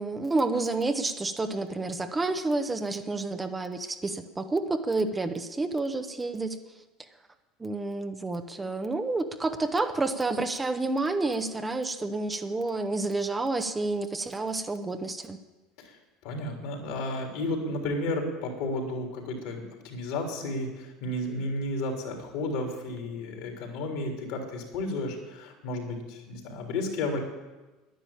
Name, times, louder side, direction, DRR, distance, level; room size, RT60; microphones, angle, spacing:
voice 1, 0.0-6.6 7.6-15.4, right 3 dB, 15° right, 7 dB, 1.1 m, -29 dB
voice 2, 15.8-27.2, left 2 dB, 65° left, 2 dB, 3.6 m, -33 dB
10.5 x 10.5 x 8.8 m, 1.2 s
hypercardioid pair, 75°, 0 cm